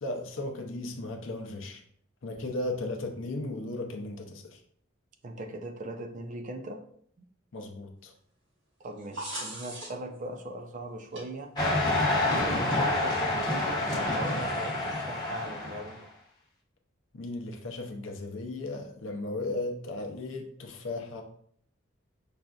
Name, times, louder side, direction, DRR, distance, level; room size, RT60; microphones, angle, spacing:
voice 1, 0.0-1.8 2.2-4.6 7.5-8.1 17.1-21.2, left 2 dB, 70° left, 3 dB, 0.6 m, -36 dB
voice 2, 5.2-6.8 8.8-11.5 12.3-16.0, right 1 dB, 40° right, 5 dB, 0.4 m, -39 dB
sound 1, 8.8-10.2 11.1-11.2 12.4-12.5 14.4-15.0, right 1 dB, 65° right, 1.1 m, -40 dB
sound 2, 11.6-15.9, left 2 dB, 20° left, 1.0 m, -28 dB
5.4 x 2.5 x 2.3 m, 0.64 s
head